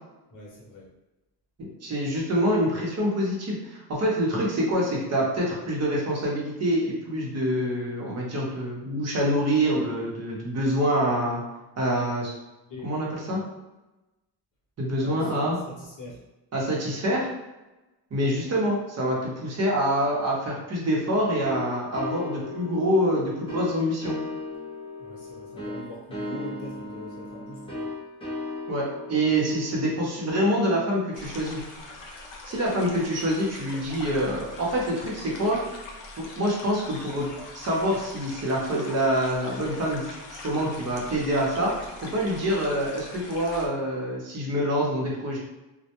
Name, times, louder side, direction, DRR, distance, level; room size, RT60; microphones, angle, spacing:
voice 1, 0.3-0.9 12.6-12.9 13.3-13.5 15.0-16.2 25.0-27.9, left 1 dB, 45° left, -5 dB, 0.8 m, -42 dB
voice 2, 1.8-11.4 11.8-12.3 12.8-13.4 14.8-15.6 16.5-17.3 18.1-24.2 28.7-31.6 32.5-35.6 36.2-41.7 42.1-45.4, equal, 40° right, -3 dB, 0.7 m, -26 dB
sound 1, 21.4-31.9, left 2 dB, 15° left, 0.5 m, -37 dB
sound 2, 31.1-43.7, left 2 dB, 85° left, 0.6 m, -42 dB
2.1 x 2.0 x 2.8 m, 1.0 s
cardioid pair, 150°, 42 cm